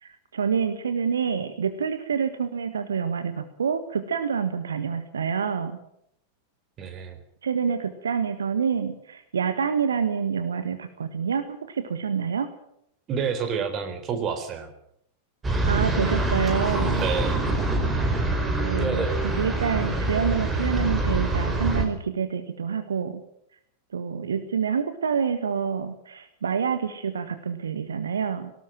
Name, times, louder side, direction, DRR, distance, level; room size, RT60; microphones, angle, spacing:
voice 1, 0.0-5.8 7.4-12.5 15.5-17.1 18.6-23.2 23.9-28.5, right 6 dB, 70° right, 10 dB, 1.5 m, -27 dB
voice 2, 6.8-7.2 13.1-14.7 16.9-17.4, right 6 dB, 30° right, 8 dB, 3.9 m, -29 dB
sound 1, 15.4-21.8, right 2 dB, 15° right, 4.7 m, -25 dB
19.0 x 18.5 x 7.6 m, 0.73 s
figure-of-eight pair, 90°, 0 cm